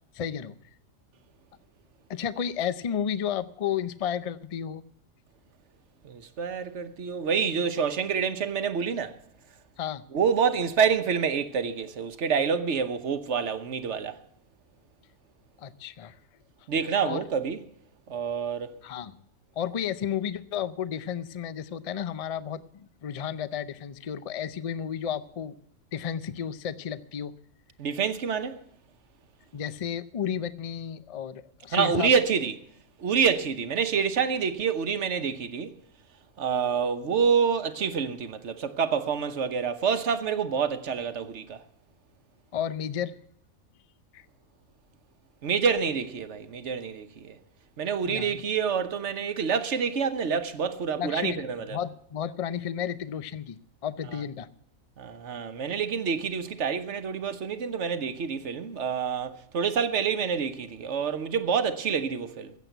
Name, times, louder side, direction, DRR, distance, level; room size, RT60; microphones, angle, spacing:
voice 1, 0.1-0.5 2.1-4.8 9.8-10.0 15.6-16.2 17.0-17.2 18.8-19.2 19.6-25.6 25.9-27.3 29.5-32.1 42.5-43.2 44.1-44.3 48.0-48.4 51.0-51.4 51.7-54.5, left 8 dB, 60° left, 0.3 m, -32 dB
voice 2, 6.0-9.2 10.1-14.2 16.7-17.6 18.1-18.8 27.8-28.6 31.7-32.5 33.0-35.7 36.4-41.6 45.4-47.4 47.8-51.8 54.1-54.2 55.0-62.5, right 6 dB, 55° right, 1.2 m, -27 dB
15.0 x 8.2 x 8.0 m
omnidirectional pair, 1.5 m